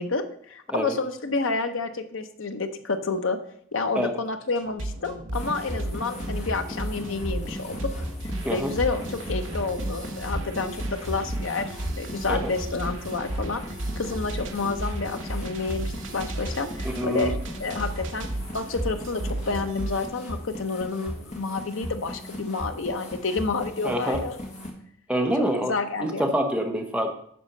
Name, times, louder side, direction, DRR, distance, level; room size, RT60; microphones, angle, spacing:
voice 1, 0.0-3.4 3.7-7.9 8.5-11.7 12.0-13.6 14.0-24.4 25.6-26.3, left 3 dB, 70° left, 8 dB, 0.8 m, -29 dB
sound 1, 4.6-20.1, right 1 dB, 65° right, 1.0 m, -34 dB
sound 2, 5.3-24.7, equal, 35° left, 1.4 m, -37 dB
voice 2, 16.8-17.3 23.8-24.2 25.1-25.7 26.0-27.1, equal, 5° right, 3 dB, 0.8 m, -26 dB
10.0 x 4.3 x 6.5 m, 0.67 s
head